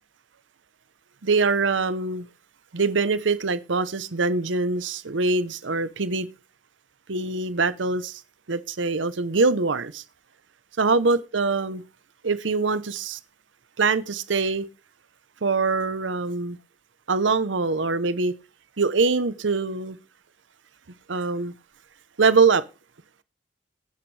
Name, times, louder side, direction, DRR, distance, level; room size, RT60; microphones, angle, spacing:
voice 1, 1.2-2.3 2.7-6.3 7.1-8.2 8.5-10.0 10.8-11.8 12.2-13.2 13.8-14.7 15.4-16.6 17.1-18.3 18.8-20.0 21.1-21.5 22.2-22.7, right 4 dB, 85° right, 0.8 m, -23 dB
18.0 x 9.6 x 3.3 m
head